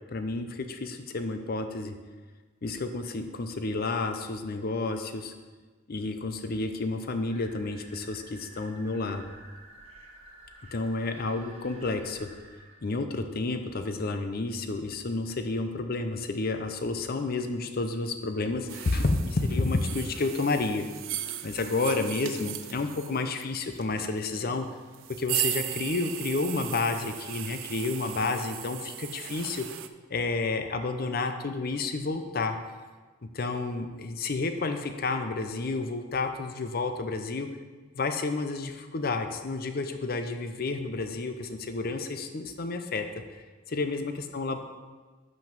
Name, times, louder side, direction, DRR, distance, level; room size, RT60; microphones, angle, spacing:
voice 1, 0.1-2.0 2.6-5.3 5.9-9.2 10.7-12.3 12.8-20.9 21.4-24.7 25.2-29.7 30.1-32.6 33.2-37.5 37.9-43.2 43.7-44.6, left 3 dB, 50° left, 7 dB, 0.6 m, -30 dB
sound 1, 7.3-12.9, right 1 dB, 30° right, 1.0 m, -51 dB
sound 2, 18.7-29.9, right 12 dB, 85° right, 0.4 m, -37 dB
5.9 x 5.3 x 5.9 m, 1.4 s
head